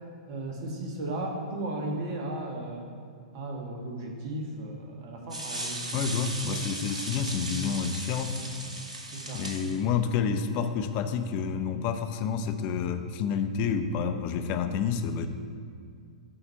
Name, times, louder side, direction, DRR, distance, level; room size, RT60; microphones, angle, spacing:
voice 1, 0.3-2.8 3.3-5.8 6.5-6.6 8.4-8.5 9.1-9.4 9.8-9.9, right 1 dB, 45° right, 1 dB, 1.5 m, -35 dB
sound 1, 5.3-9.8, right 1 dB, 75° right, 1.2 m, -37 dB
voice 2, 5.9-8.4 9.3-15.3, left 6 dB, 40° left, 8 dB, 0.6 m, -29 dB
9.3 x 4.1 x 5.6 m, 2.2 s
figure-of-eight pair, 105°, 4 cm